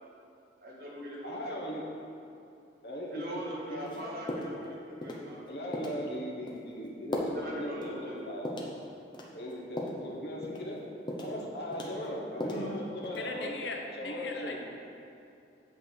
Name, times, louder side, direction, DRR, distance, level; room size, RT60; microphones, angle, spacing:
voice 1, 0.6-1.5 3.1-5.4 5.7-5.9 7.2-8.3 12.3-12.7, equal, 55° right, -4 dB, 1.6 m, -42 dB
voice 2, 1.2-1.8 2.8-3.4 3.7-4.0 5.5-8.0 8.2-8.5 9.3-10.8 11.2-13.6 13.9-14.6, equal, 60° left, -2 dB, 1.2 m, -38 dB
sound 1, 3.9-4.0 4.3-4.6 5.0-5.3 5.7-6.0 6.5-6.6 7.1-7.4 7.8-8.0 8.4-8.7 9.1-10.0 10.4-10.7 11.1-11.4 11.7-12.7 13.0-13.4, left 1 dB, 25° left, 0.8 m, -37 dB
voice 3, 13.2-14.6, left 3 dB, 80° left, 2 dB, 0.9 m, -38 dB
8.1 x 4.3 x 6.4 m, 2.6 s
head